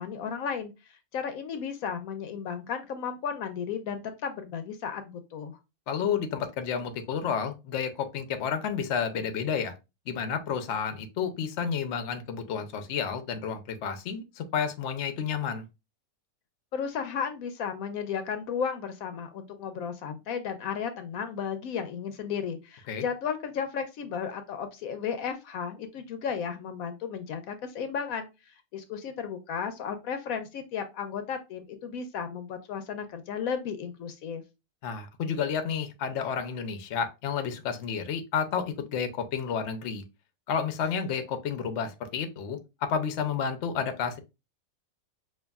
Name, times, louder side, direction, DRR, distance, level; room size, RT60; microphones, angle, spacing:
voice 1, 0.0-5.6 16.7-28.3 28.7-34.4, left 7 dB, 80° left, 1.0 m, -34 dB
voice 2, 5.9-9.7 10.1-15.7 22.9-23.0 34.8-40.0 40.5-44.2, left 7 dB, 60° left, 0.9 m, -31 dB
5.4 x 2.6 x 2.3 m
omnidirectional pair, 1.5 m